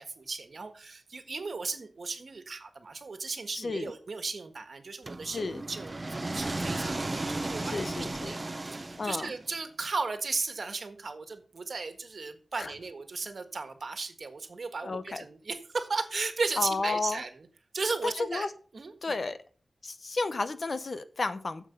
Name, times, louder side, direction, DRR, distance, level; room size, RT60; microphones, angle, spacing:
voice 1, 0.0-7.9 8.2-17.5 17.7-18.5 18.7-19.1, right 4 dB, 70° right, 8 dB, 1.5 m, -36 dB
voice 2, 3.5-3.9 5.3-5.6 7.7-8.3 9.0-9.3 12.6-12.7 14.8-15.2 16.6-17.2 18.0-18.5 19.0-19.4 19.8-21.7, left 3 dB, 60° left, 12 dB, 0.9 m, -32 dB
sound 1, 5.1-9.5, right 2 dB, 35° right, 0.7 m, -35 dB
9.2 x 7.2 x 5.7 m, 0.42 s
wide cardioid pair, 85°, 0 cm